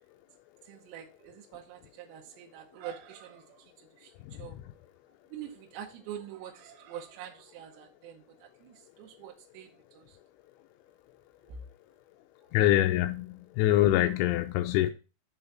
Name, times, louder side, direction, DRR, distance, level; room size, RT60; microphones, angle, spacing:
voice 1, 0.6-4.6 5.3-9.7 9.9-10.2 11.5-11.6, right 10 dB, 75° right, 2.8 m, -45 dB
voice 2, 4.2-4.6 12.5-14.9, left 13 dB, 85° left, 2.8 m, -25 dB
7.0 x 3.9 x 5.7 m
omnidirectional pair, 5.5 m